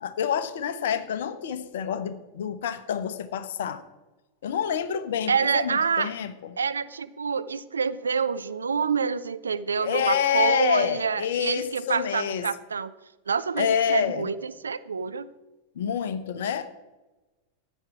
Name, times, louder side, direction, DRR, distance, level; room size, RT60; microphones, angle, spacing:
voice 1, 0.0-3.8 4.4-6.5 9.8-12.5 13.6-14.3 15.8-16.7, left 8 dB, 60° left, 10 dB, 1.0 m, -27 dB
voice 2, 5.3-6.1 6.6-12.9 13.3-15.3, right 5 dB, 75° right, 13 dB, 0.5 m, -27 dB
14.0 x 9.2 x 4.9 m, 1.1 s
figure-of-eight pair, 90°, 0 cm